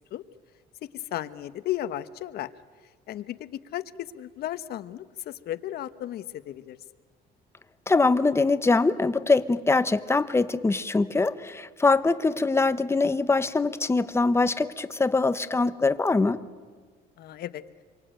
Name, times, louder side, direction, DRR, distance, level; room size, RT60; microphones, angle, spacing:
voice 1, 0.8-2.5 3.1-6.8 17.2-17.6, left 13 dB, 70° left, 13 dB, 1.1 m, -34 dB
voice 2, 7.9-16.4, left 3 dB, 15° left, 12 dB, 1.1 m, -23 dB
26.5 x 24.0 x 9.0 m, 1.5 s
cardioid pair, 110°, 17 cm